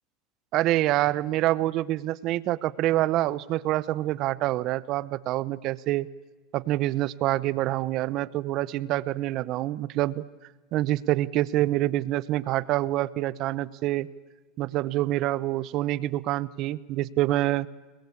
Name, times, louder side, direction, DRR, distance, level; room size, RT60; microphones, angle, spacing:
voice 1, 0.5-6.1 6.5-10.2 10.7-14.1 14.6-17.7, right 15 dB, 55° right, 18 dB, 0.9 m, -26 dB
29.5 x 21.0 x 8.6 m, 1.3 s
supercardioid pair, 115°, 0 cm